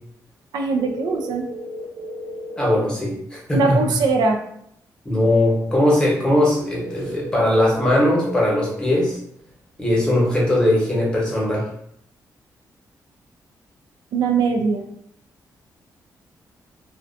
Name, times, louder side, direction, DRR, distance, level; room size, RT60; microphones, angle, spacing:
voice 1, 0.5-1.5 3.5-4.4 14.1-14.9, right 4 dB, 90° right, 3 dB, 0.3 m, -21 dB
sound 1, 0.8-2.8 6.7-8.8, equal, 30° right, 0.6 m, -33 dB
voice 2, 2.6-3.8 5.0-9.2 9.8-11.7, left 1 dB, 15° left, -4 dB, 0.9 m, -19 dB
2.4 x 2.1 x 2.5 m, 0.73 s
cardioid pair, 130°, 7 cm